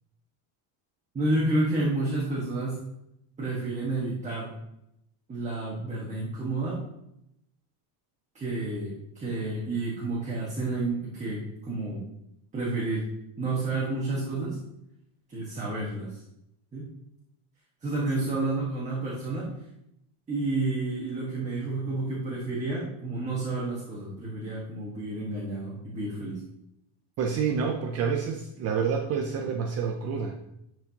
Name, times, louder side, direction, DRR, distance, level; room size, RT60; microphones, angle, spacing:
voice 1, 1.1-2.8 3.4-4.5 5.3-6.8 8.3-12.0 12.5-13.1 13.4-14.6 15.3-16.2 16.7-16.9 17.8-19.5 20.3-26.4, right 2 dB, 15° right, -6 dB, 1.2 m, -30 dB
voice 2, 27.2-30.3, right 6 dB, 35° right, 2 dB, 0.4 m, -28 dB
11.5 x 4.6 x 2.8 m, 0.81 s
cardioid pair, 170°, 49 cm